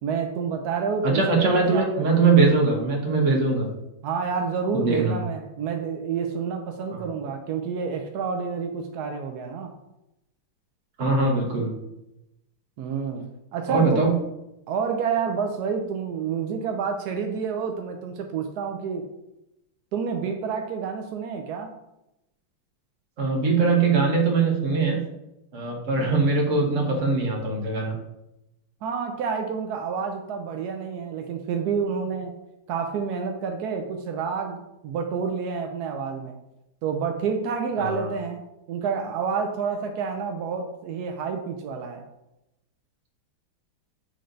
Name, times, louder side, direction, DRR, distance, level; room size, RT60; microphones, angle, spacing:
voice 1, 0.0-2.4 4.0-9.7 12.8-14.0 14.7-19.1 19.9-21.7 28.8-32.3 32.7-36.4 36.8-38.4 38.7-42.0, right 6 dB, 80° right, 4 dB, 0.9 m, -29 dB
voice 2, 1.0-3.7 4.7-5.1 6.9-7.0 11.0-11.7 13.7-14.1 23.2-25.0 25.5-27.9 37.8-38.1, right 4 dB, 40° right, -1 dB, 1.4 m, -21 dB
7.8 x 3.3 x 3.8 m, 0.90 s
omnidirectional pair, 2.3 m